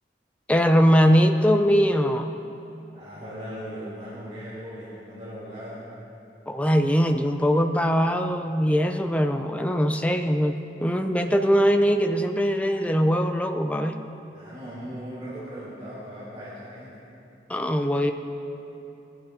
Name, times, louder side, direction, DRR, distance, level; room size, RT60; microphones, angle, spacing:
voice 1, 0.5-2.3 6.5-14.0 17.5-18.1, equal, 10° left, 5 dB, 0.4 m, -21 dB
voice 2, 2.9-5.9 14.3-16.9, equal, 40° right, -10 dB, 2.8 m, -38 dB
20.0 x 12.0 x 2.7 m, 2.8 s
head